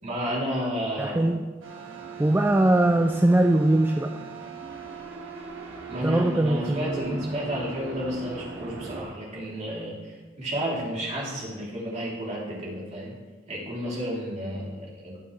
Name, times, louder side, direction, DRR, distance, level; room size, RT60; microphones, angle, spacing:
voice 1, 0.0-1.3 5.9-13.1 13.5-15.2, equal, 35° right, -5 dB, 3.1 m, -32 dB
voice 2, 1.0-1.5 2.2-4.1 6.0-7.4, right 1 dB, 10° right, 5 dB, 0.3 m, -22 dB
sound 1, 1.6-9.0, right 5 dB, 80° right, 1.8 m, -39 dB
18.0 x 7.2 x 3.2 m, 1.3 s
head